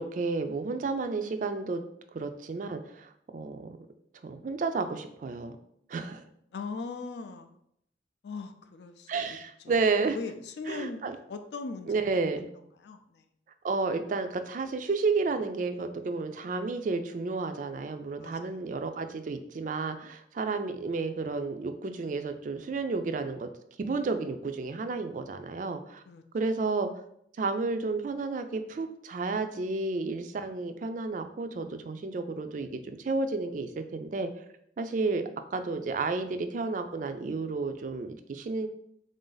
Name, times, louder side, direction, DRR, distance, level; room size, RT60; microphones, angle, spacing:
voice 1, 0.0-1.8 2.1-3.8 4.2-5.6 5.9-6.2 9.1-10.2 10.7-11.2 11.9-12.5 13.6-23.5 23.8-26.0 26.3-26.9 27.4-34.3 34.8-35.2 35.5-38.7, right 3 dB, 45° right, 8 dB, 0.3 m, -31 dB
voice 2, 6.5-7.6 8.2-9.4 9.6-9.8 10.1-12.4 12.8-13.3 18.2-18.6 26.1-26.2, left 4 dB, 65° left, 7 dB, 0.4 m, -40 dB
3.7 x 2.6 x 3.8 m, 0.71 s
head